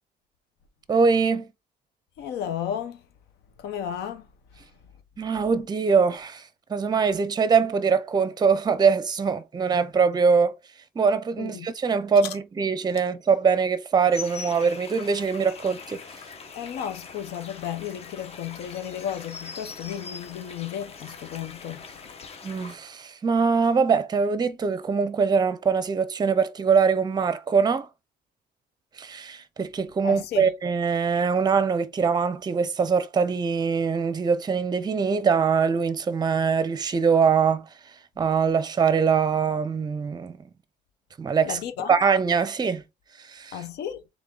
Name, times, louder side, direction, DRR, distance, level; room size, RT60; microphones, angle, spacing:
voice 1, 0.9-1.5 5.2-10.5 11.0-16.0 22.4-27.9 29.0-37.6 38.2-40.3 41.2-41.6 41.9-42.8 43.2-43.6, right 5 dB, 25° right, 0.6 m, -23 dB
voice 2, 2.2-3.0 3.6-4.3 11.4-11.7 16.5-21.8 30.0-30.5 41.4-41.9 43.5-44.0, left 9 dB, 75° left, 1.1 m, -33 dB
sound 1, 14.1-22.8, left 5 dB, 35° left, 1.0 m, -42 dB
3.7 x 3.5 x 3.8 m
cardioid pair, 110°, 17 cm